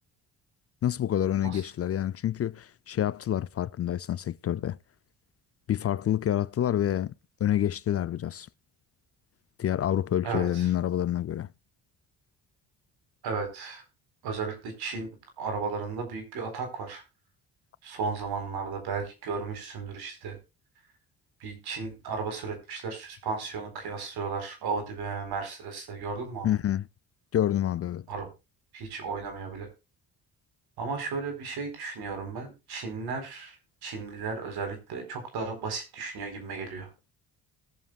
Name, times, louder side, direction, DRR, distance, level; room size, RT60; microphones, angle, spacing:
voice 1, 0.8-4.8 5.7-7.1 7.4-8.5 9.6-11.5 26.4-26.9 27.3-28.1, left 11 dB, 40° left, 0.5 m, -27 dB
voice 2, 10.2-10.7 13.2-13.8 14.2-15.1 15.4-17.0 17.8-20.4 21.4-26.5 28.1-28.3 28.7-29.7 30.8-33.6 33.8-36.9, right 4 dB, 75° right, 4.2 m, -34 dB
20.0 x 7.3 x 2.3 m
supercardioid pair, 75°, 38 cm